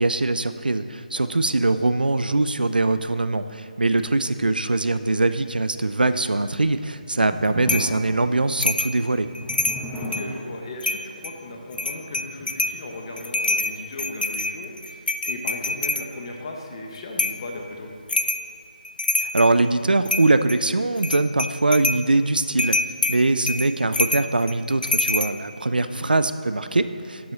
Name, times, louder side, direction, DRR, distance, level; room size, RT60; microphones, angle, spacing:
voice 1, 0.0-9.3 19.2-22.8 23.1-27.3, right 2 dB, 80° right, 11 dB, 0.5 m, -22 dB
sound 1, 7.0-13.9, equal, 5° left, 0.8 m, -38 dB
sound 2, 7.7-8.0 8.6-9.0 9.3-10.3 10.8-11.3 11.7-12.8 13.2-16.1 17.2-17.5 18.1-18.5 18.8-19.6 20.1-20.6 21.0-22.0 22.6-25.3, left 2 dB, 75° left, 0.5 m, -25 dB
voice 2, 9.9-17.9 25.7-26.1, left 2 dB, 35° left, 1 dB, 1.3 m, -37 dB
12.0 x 7.6 x 4.1 m, 2.5 s
figure-of-eight pair, 155°, 5 cm